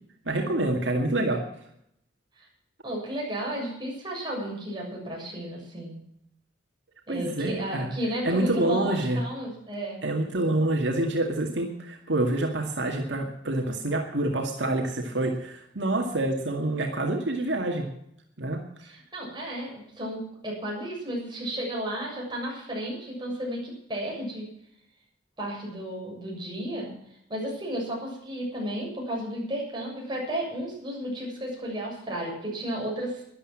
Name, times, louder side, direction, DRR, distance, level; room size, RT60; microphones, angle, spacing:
voice 1, 0.3-1.4 7.1-7.9 8.2-9.2 10.0-17.9 18.4-18.6, right 2 dB, 80° right, 2 dB, 2.1 m, -27 dB
voice 2, 2.8-6.0 7.1-10.0 18.8-24.5 25.4-26.9 27.3-33.2, right 1 dB, 25° right, -3 dB, 7.2 m, -33 dB
12.5 x 11.5 x 7.5 m, 0.74 s
head